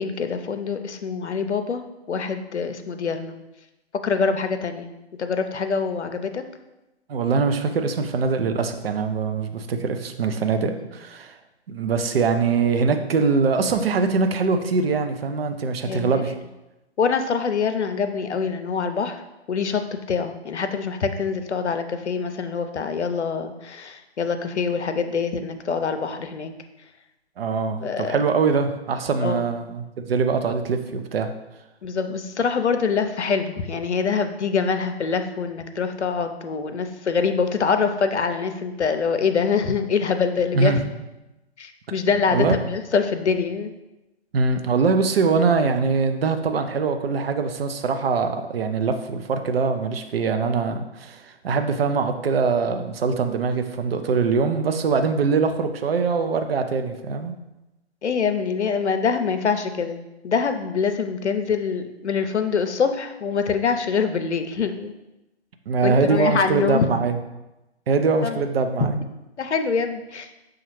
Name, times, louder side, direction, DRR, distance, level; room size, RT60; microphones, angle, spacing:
voice 1, 0.0-1.8 2.1-3.3 4.0-4.9 5.2-6.4 15.8-16.1 17.0-19.2 19.5-19.8 20.1-26.5 27.8-28.2 29.2-29.5 31.8-40.7 41.6-43.7 58.0-64.9 65.8-66.9 68.2-68.4 69.4-70.3, left 5 dB, 85° left, 8 dB, 0.6 m, -24 dB
voice 2, 7.1-11.4 11.7-16.3 27.4-31.3 40.5-40.9 42.3-42.5 44.3-57.3 65.7-67.2 67.9-68.9, right 4 dB, 60° right, 6 dB, 0.6 m, -23 dB
6.2 x 2.3 x 3.1 m, 0.98 s
figure-of-eight pair, 135°, 33 cm